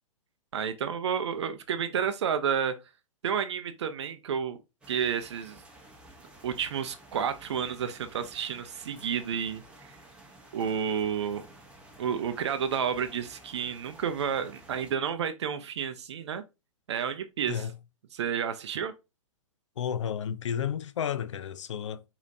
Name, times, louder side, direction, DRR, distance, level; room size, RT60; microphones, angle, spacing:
voice 1, 0.5-2.8 3.2-4.6 4.9-5.6 6.4-9.6 10.5-11.5 12.0-16.4 16.9-17.7 18.1-18.9, right 7 dB, 55° right, 0.5 m, -30 dB
sound 1, 4.8-14.9, right 1 dB, 5° right, 0.9 m, -53 dB
voice 2, 19.8-22.0, left 8 dB, 60° left, 0.5 m, -32 dB
4.8 x 2.9 x 2.6 m
figure-of-eight pair, 110°, 17 cm